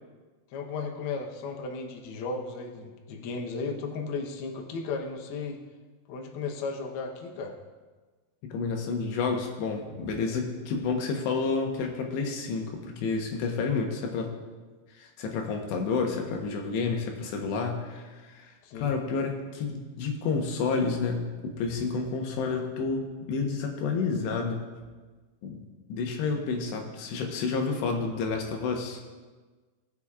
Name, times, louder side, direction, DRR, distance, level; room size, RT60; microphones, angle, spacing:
voice 1, 0.5-5.6 6.1-7.5 18.6-18.9, left 4 dB, 75° left, 1 dB, 2.8 m, -35 dB
voice 2, 8.4-14.3 15.0-23.0 23.3-24.6 25.4-25.6 25.9-29.0, left 4 dB, 90° left, 2 dB, 3.3 m, -30 dB
19.0 x 6.9 x 2.4 m, 1.3 s
omnidirectional pair, 4.8 m